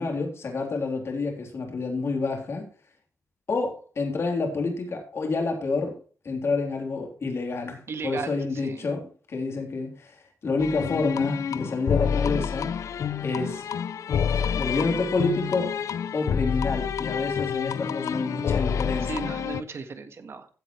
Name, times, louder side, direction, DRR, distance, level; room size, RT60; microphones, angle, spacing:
voice 1, 0.0-2.7 3.5-6.0 6.2-12.7 13.2-13.7 14.5-15.7 16.1-19.3, left 3 dB, 60° left, 2 dB, 3.5 m, -28 dB
voice 2, 7.9-8.9 19.0-20.5, right 4 dB, 55° right, 8 dB, 1.6 m, -36 dB
sound 1, 10.6-19.6, left 7 dB, 85° left, 0.6 m, -28 dB
15.5 x 8.2 x 3.2 m, 0.37 s
wide cardioid pair, 120°, 5 cm